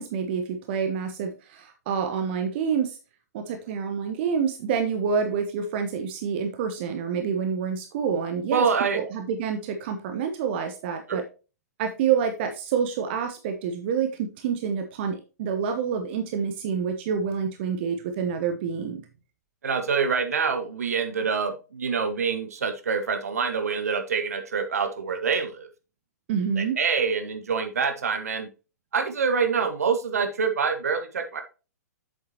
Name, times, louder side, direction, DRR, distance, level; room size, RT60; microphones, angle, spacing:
voice 1, 0.0-3.0 3.3-8.7 8.9-11.2 11.8-19.0 26.3-26.8, right 6 dB, 40° right, 6 dB, 1.0 m, -27 dB
voice 2, 8.5-9.0 11.1-11.2 19.6-25.7 26.6-28.5 28.9-31.4, right 5 dB, 60° right, 8 dB, 1.4 m, -26 dB
8.0 x 7.1 x 2.8 m, 0.32 s
figure-of-eight pair, 115°, 9 cm